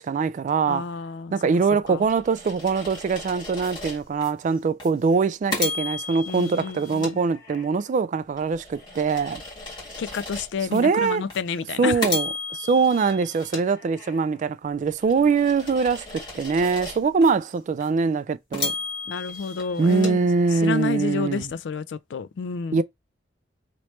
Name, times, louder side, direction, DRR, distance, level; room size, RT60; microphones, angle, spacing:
voice 1, 0.0-0.9 1.3-9.4 10.7-11.2 11.8-18.7 19.8-21.5 22.7-22.8, right 5 dB, 45° right, 0.3 m, -23 dB
voice 2, 0.7-1.3 1.9-2.0 6.3-7.2 10.0-12.0 19.1-20.2 20.6-22.8, left 5 dB, 75° left, 0.4 m, -30 dB
sound 1, 1.9-4.3 4.8-5.0 5.5-7.9 8.4-10.8 11.3-11.5 12.0-14.4 14.9-17.3 17.8-17.9 18.5-20.9, left 4 dB, 25° left, 1.9 m, -34 dB
3.1 x 3.0 x 3.1 m
head